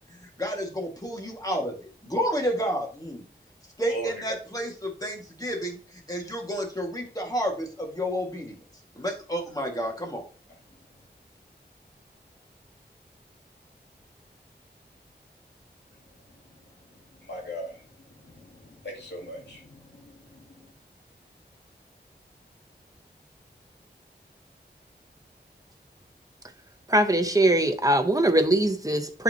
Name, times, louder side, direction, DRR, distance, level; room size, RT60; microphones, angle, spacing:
voice 1, 0.2-3.3 3.8-8.6 9.0-10.2, equal, 20° left, 1.9 m, -30 dB
voice 2, 17.2-20.7, equal, 75° left, 2.4 m, -40 dB
voice 3, 26.9-29.2, right 1 dB, 20° right, 0.9 m, -22 dB
11.0 x 4.3 x 2.9 m
wide cardioid pair, 70°, 18 cm